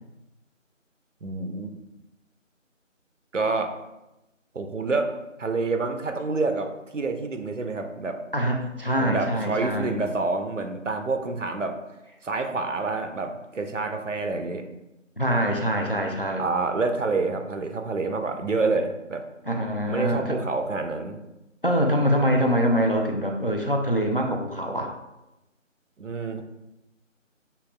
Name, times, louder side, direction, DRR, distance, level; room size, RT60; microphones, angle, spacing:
voice 1, 1.2-1.7 3.3-3.7 4.5-5.1 5.4-8.2 9.0-11.8 12.2-14.7 16.4-19.2 19.9-21.2 26.0-26.4, right 3 dB, 70° right, 6 dB, 0.7 m, -28 dB
voice 2, 8.3-10.0 15.2-16.4 19.5-20.4 21.6-24.9, equal, 45° left, 2 dB, 0.5 m, -24 dB
6.8 x 2.9 x 2.2 m, 0.95 s
figure-of-eight pair, 175°, 39 cm